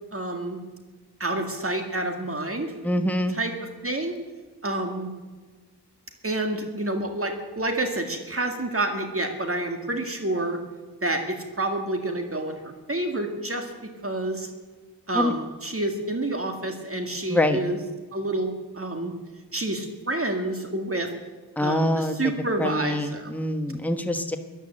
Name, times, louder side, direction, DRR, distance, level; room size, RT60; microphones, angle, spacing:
voice 1, 0.1-0.6 1.2-2.7 3.3-3.5 3.8-4.2 4.6-5.1 6.2-10.6 11.0-13.7 14.0-14.5 15.1-17.8 18.1-19.1 19.5-21.1 21.6-23.3, right 2 dB, 35° right, 4 dB, 2.1 m, -28 dB
voice 2, 2.8-3.4 15.1-15.3 17.3-17.6 21.6-22.2 22.6-24.4, left 1 dB, 5° left, 6 dB, 1.2 m, -25 dB
16.5 x 11.0 x 7.6 m, 1.3 s
wide cardioid pair, 75°, 40 cm